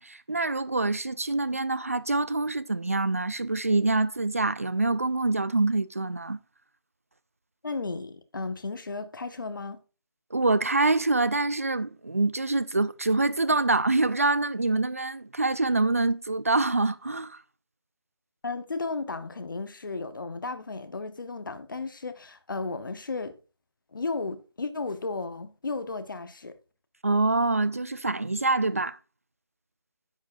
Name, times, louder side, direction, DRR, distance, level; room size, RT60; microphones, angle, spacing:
voice 1, 0.0-6.4 10.3-17.4 27.0-29.0, right 2 dB, 30° right, 0.3 m, -25 dB
voice 2, 7.6-9.8 18.4-23.3 23.9-26.6, left 3 dB, 50° left, 1.0 m, -34 dB
10.5 x 7.2 x 2.6 m
figure-of-eight pair, 175°, 14 cm